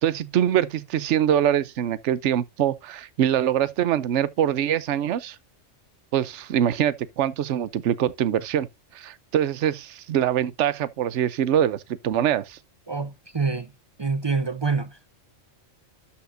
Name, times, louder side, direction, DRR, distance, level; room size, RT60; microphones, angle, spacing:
voice 1, 0.0-5.4 6.1-8.7 8.9-12.6, right 10 dB, 70° right, 1.0 m, -24 dB
voice 2, 12.9-13.7 14.0-15.0, right 4 dB, 35° right, 0.4 m, -26 dB
12.5 x 5.8 x 2.6 m
omnidirectional pair, 1.3 m